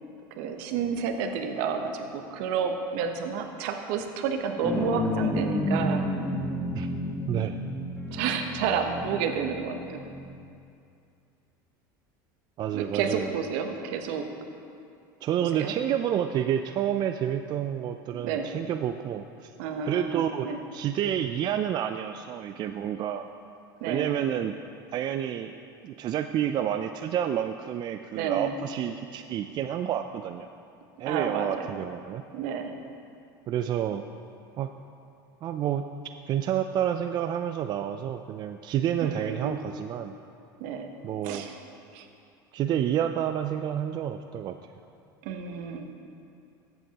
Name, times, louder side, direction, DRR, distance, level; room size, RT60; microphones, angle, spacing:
voice 1, 0.3-6.0 8.1-10.1 12.7-14.3 15.6-15.7 18.2-18.6 19.6-20.6 23.8-24.2 28.1-28.6 31.1-31.8 32.3-32.8 39.0-39.6 40.6-40.9 41.2-41.5 41.9-42.1 45.2-45.9, right 6 dB, 70° right, 5 dB, 0.9 m, -30 dB
sound 1, 4.6-10.4, left 1 dB, 10° left, 1.2 m, -31 dB
voice 2, 7.3-7.6 12.6-13.3 15.2-19.5 19.9-23.2 23.9-24.5 24.9-25.6 25.8-30.5 31.0-32.2 33.5-34.1 34.6-34.7 35.4-35.9 36.3-40.2 41.0-41.5 42.5-44.6, right 10 dB, 40° right, 8 dB, 0.3 m, -29 dB
14.0 x 8.0 x 2.9 m, 2.5 s
supercardioid pair, 100°, 11 cm